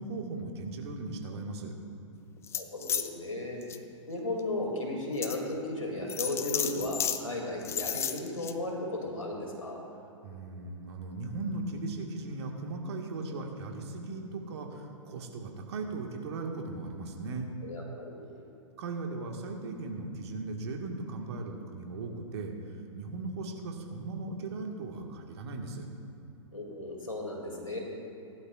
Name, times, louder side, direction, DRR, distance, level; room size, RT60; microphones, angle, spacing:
voice 1, 0.0-1.7 10.2-17.5 18.8-22.5 22.9-25.9, right 3 dB, 55° right, 2 dB, 1.7 m, -38 dB
sound 1, 2.4-3.1 3.6-3.8 4.4-4.5 5.2-5.4 6.1-7.2 7.6-8.5, left 9 dB, 15° left, 0.5 m, -32 dB
voice 2, 2.5-3.6 4.1-9.8 17.6-18.3 26.5-27.8, left 2 dB, 90° left, -1 dB, 2.7 m, -35 dB
18.5 x 11.5 x 2.5 m, 2.9 s
figure-of-eight pair, 110°, 16 cm